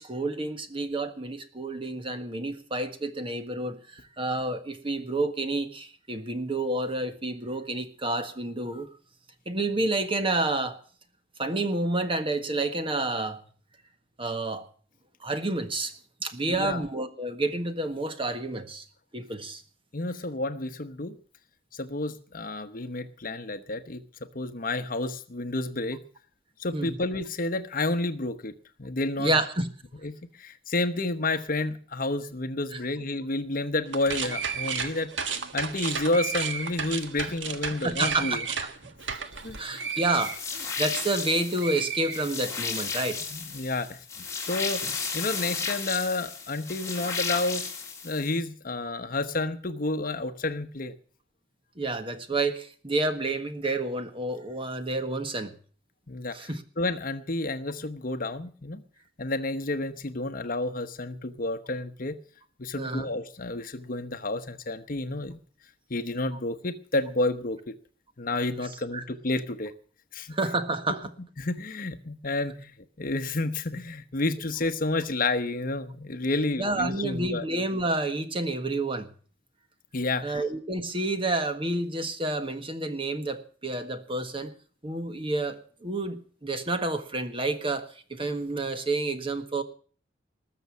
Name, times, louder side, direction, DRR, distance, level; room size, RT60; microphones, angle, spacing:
voice 1, 0.0-8.9 9.4-10.8 11.4-13.4 14.2-14.7 15.2-15.9 16.2-18.8 19.1-19.6 26.7-27.0 29.2-29.7 32.7-32.8 37.8-38.3 39.6-40.3 40.8-43.2 51.8-55.5 56.3-56.6 62.7-63.1 68.9-69.0 70.3-71.1 76.6-79.1 80.2-84.5 84.8-89.6, right 2 dB, 30° right, 9 dB, 1.5 m, -29 dB
voice 2, 16.5-16.8 19.9-21.1 21.7-24.0 24.3-26.0 26.6-28.5 28.8-29.3 30.0-38.5 39.4-39.6 43.3-44.0 44.4-47.6 48.0-50.9 56.1-56.5 56.8-58.8 59.2-62.1 62.6-65.4 65.9-67.7 68.2-69.7 70.1-70.3 71.4-72.7 73.0-77.4 79.9-80.4, left 2 dB, 50° left, 11 dB, 1.1 m, -30 dB
sound 1, 33.9-41.3 41.6-42.8, right 6 dB, 80° right, 1.5 m, -33 dB
sound 2, 40.2-48.4, left 5 dB, 15° left, 2.7 m, -34 dB
20.0 x 6.8 x 8.3 m, 0.43 s
head